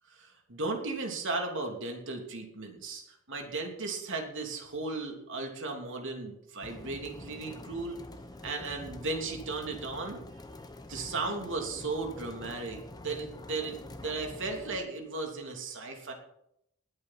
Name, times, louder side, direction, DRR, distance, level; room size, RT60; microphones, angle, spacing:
voice 1, 0.2-3.0 3.3-8.0 8.4-10.2 10.9-16.1, right 3 dB, 60° right, 2 dB, 3.1 m, -36 dB
sound 1, 6.6-14.8, left 1 dB, 20° left, 1.1 m, -46 dB
20.0 x 9.0 x 4.3 m, 0.76 s
head